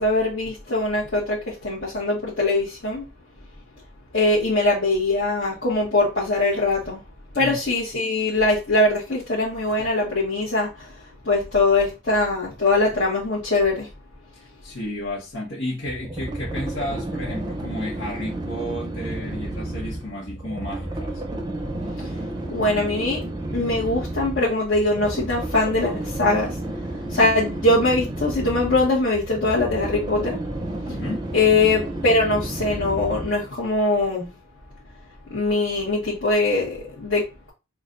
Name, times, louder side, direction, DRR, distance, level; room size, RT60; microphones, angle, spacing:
voice 1, 0.0-3.1 4.1-7.0 7.3-13.9 22.0-22.2 22.5-23.2 23.5-26.8 27.1-30.4 31.3-34.3 35.3-37.5, left 2 dB, 60° left, 1.3 m, -22 dB
voice 2, 14.3-21.2 30.8-31.3, left 1 dB, 80° left, 1.2 m, -32 dB
sound 1, 15.9-33.5, right 1 dB, 20° right, 0.6 m, -31 dB
6.0 x 2.4 x 2.5 m
head